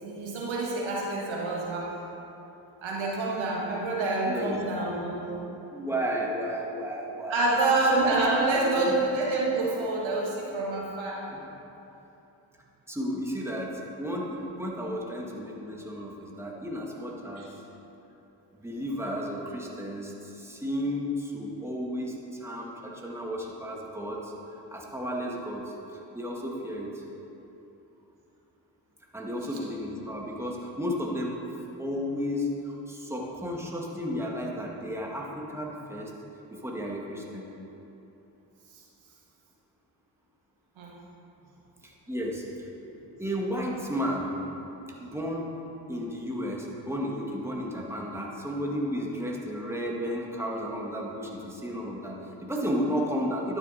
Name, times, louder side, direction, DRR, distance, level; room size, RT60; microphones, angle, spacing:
voice 1, 0.0-2.0 2.8-5.3 7.3-11.2 17.4-17.5 40.8-40.9, right 2 dB, 75° right, -3 dB, 1.7 m, -27 dB
voice 2, 4.2-4.6 5.7-7.9 8.8-9.0 11.3-11.4 12.9-17.5 18.6-27.0 29.1-31.4 31.8-36.1 36.5-37.4 41.8-42.7 43.2-44.3 45.0-45.5 45.9-53.6, equal, 5° right, -2 dB, 1.9 m, -33 dB
11.5 x 6.8 x 4.2 m, 2.9 s
supercardioid pair, 45°, 47 cm